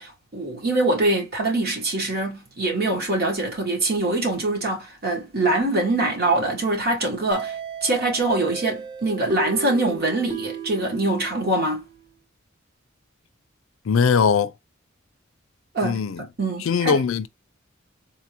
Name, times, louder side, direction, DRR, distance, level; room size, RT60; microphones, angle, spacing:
voice 1, 0.0-7.5 7.8-11.8 15.7-16.0 16.4-17.0, right 2 dB, 50° right, 1.5 m, -24 dB
sound 1, 7.3-12.0, right 6 dB, 20° right, 0.9 m, -34 dB
voice 2, 13.9-14.5 15.8-16.3 16.6-17.3, left 6 dB, 80° left, 0.4 m, -20 dB
3.8 x 2.5 x 2.8 m
head